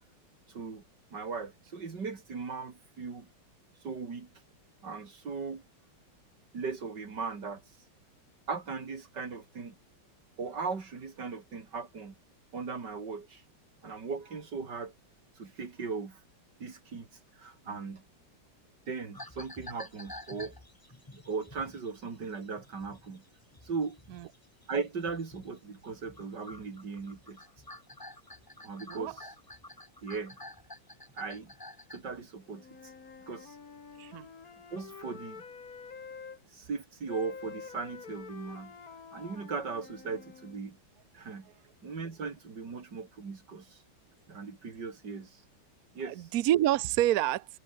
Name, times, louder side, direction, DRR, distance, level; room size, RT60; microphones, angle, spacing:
voice 1, 0.5-0.8 1.1-3.3 3.8-4.3 4.8-5.6 6.5-7.6 8.5-9.8 10.4-12.2 12.5-13.4 13.8-14.9 15.4-16.2 16.6-17.1 17.3-18.0 18.9-20.6 21.1-23.2 23.6-24.0 24.7-27.4 28.6-29.2 30.0-30.4 31.1-31.5 31.9-32.9 33.3-33.6 34.7-35.4 36.5-38.7 39.1-40.8 41.1-41.5 41.8-43.8 44.3-45.4 45.9-46.3, right 5 dB, 55° right, 3.4 m, -38 dB
sound 1, 19.1-25.6 25.8-32.2, left 1 dB, 10° left, 1.8 m, -50 dB
Wind instrument woodwind instrument, 32.5-36.4 37.1-40.6, left 5 dB, 45° left, 2.4 m, -47 dB
voice 2, 46.1-47.5, right 13 dB, 75° right, 0.8 m, -27 dB
omnidirectional pair, 2.3 m